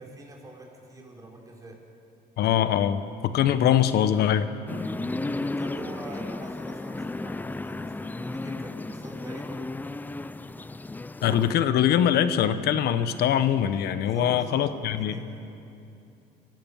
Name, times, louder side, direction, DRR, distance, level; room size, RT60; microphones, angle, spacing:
voice 1, 0.0-1.8 4.9-9.7 14.0-15.4, right 2 dB, 20° right, -1 dB, 5.2 m, -44 dB
voice 2, 2.4-4.5 11.2-15.1, left 10 dB, 70° left, 11 dB, 1.1 m, -23 dB
sound 1, 4.7-11.5, left 2 dB, 10° left, 0.5 m, -34 dB
27.5 x 15.5 x 7.3 m, 2.7 s
cardioid pair, 110°, 17 cm